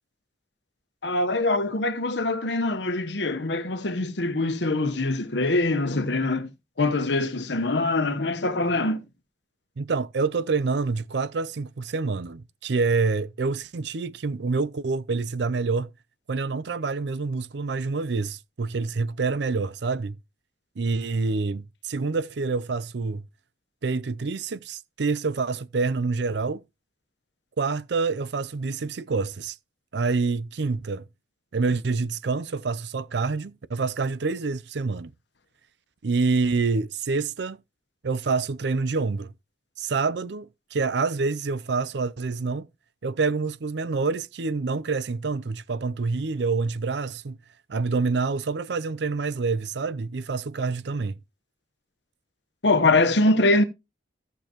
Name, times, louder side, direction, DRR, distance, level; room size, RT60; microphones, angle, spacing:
voice 1, 1.0-6.5 6.8-9.0 52.6-53.6, left 2 dB, 70° left, 1.1 m, -23 dB
voice 2, 9.8-15.9 16.3-20.2 20.8-23.2 23.8-26.6 27.6-29.6 29.9-31.0 31.5-35.1 36.0-37.6 38.0-39.3 39.8-42.7 43.0-47.4 47.7-51.1, right 4 dB, 65° right, 0.5 m, -27 dB
14.5 x 6.8 x 3.0 m
head